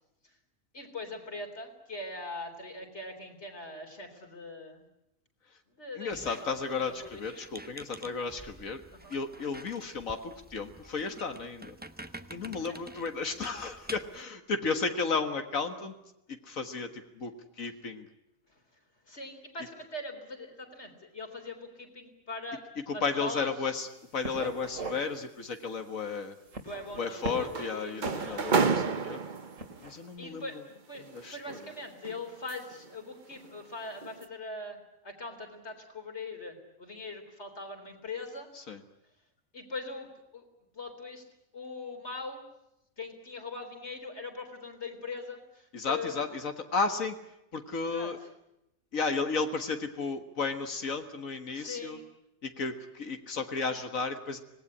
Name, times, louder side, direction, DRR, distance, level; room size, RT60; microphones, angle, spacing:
voice 1, 0.7-4.8 5.7-7.2 8.9-9.2 12.6-13.0 18.5-18.6 19.1-22.6 22.9-23.8 26.6-28.5 30.2-38.5 39.5-40.1 40.3-40.4 40.7-41.2 41.5-42.4 43.0-46.2 47.8-48.1 51.5-52.0, left 3 dB, 55° left, 5 dB, 4.2 m, -41 dB
voice 2, 6.0-8.8 9.1-11.8 12.3-15.9 16.3-17.3 17.6-18.1 22.9-23.9 24.1-26.4 27.0-29.2 29.8-30.4 31.1-31.6 38.7-38.8 45.7-47.2 47.5-48.2 48.9-52.0 52.4-54.4, left 4 dB, 75° left, 6 dB, 2.0 m, -33 dB
Squeak, 6.1-14.2, right 1 dB, 10° right, 0.9 m, -48 dB
sound 1, 23.8-24.0 24.2-25.0 25.4-25.6 26.4-27.6 28.0-28.8 29.5-29.9, right 3 dB, 70° right, 3.4 m, -40 dB
sound 2, 26.9-29.8 30.9-32.9 33.3-33.6 34.0-34.2, right 5 dB, 40° right, 1.1 m, -31 dB
25.5 x 19.0 x 9.8 m, 0.88 s
omnidirectional pair, 1.4 m